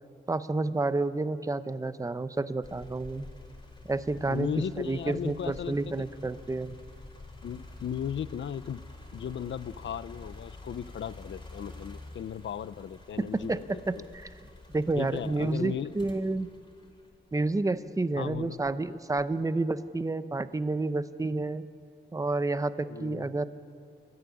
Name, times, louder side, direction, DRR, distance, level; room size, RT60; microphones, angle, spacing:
voice 1, 0.3-3.3 3.8-6.8 13.2-14.3 14.7-16.5 17.3-21.6 22.1-23.5, right 2 dB, 15° right, 12 dB, 0.7 m, -30 dB
sound 1, 2.6-17.7 18.3-19.5, left 2 dB, 25° left, 3.8 m, -48 dB
voice 2, 4.3-6.1 7.4-8.8 9.1-14.1 15.0-15.9 18.2-18.6 22.9-23.3, left 9 dB, 80° left, 15 dB, 0.7 m, -36 dB
27.5 x 14.5 x 9.4 m, 2.3 s
wide cardioid pair, 125°, 19 cm